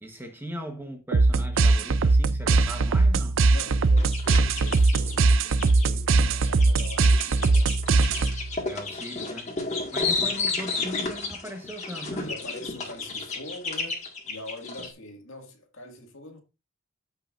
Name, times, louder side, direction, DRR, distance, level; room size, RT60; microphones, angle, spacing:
voice 1, 0.0-3.4 8.6-9.5 9.9-12.3, equal, 10° right, 1.1 m, -39 dB
sound 1, 1.1-8.6, right 3 dB, 55° right, 0.4 m, -21 dB
voice 2, 3.5-7.9 9.9-10.1 12.2-16.4, left 1 dB, 60° left, 2.0 m, -44 dB
sound 2, 4.0-5.9 6.4-14.9, left 4 dB, 30° left, 1.8 m, -32 dB
14.0 x 5.6 x 2.5 m
head